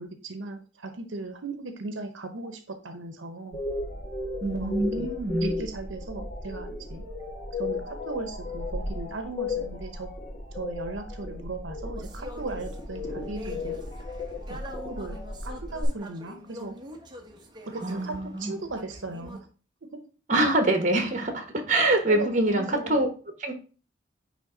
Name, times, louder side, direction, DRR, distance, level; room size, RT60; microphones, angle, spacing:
voice 1, 0.0-3.6 4.5-5.1 5.4-7.0 7.6-10.1 10.5-13.8 14.5-16.7 17.7-18.1 18.4-19.5 22.1-23.0, right 3 dB, 75° right, 6 dB, 0.8 m, -37 dB
sound 1, 3.5-15.8, left 3 dB, 35° left, 1.4 m, -35 dB
voice 2, 4.4-5.5 17.7-18.6 20.3-23.1 23.4-23.5, right 2 dB, 40° right, 6 dB, 1.3 m, -25 dB
sound 2, 12.0-19.4, left 1 dB, 25° right, 0.9 m, -45 dB
9.5 x 3.3 x 3.8 m, 0.38 s
head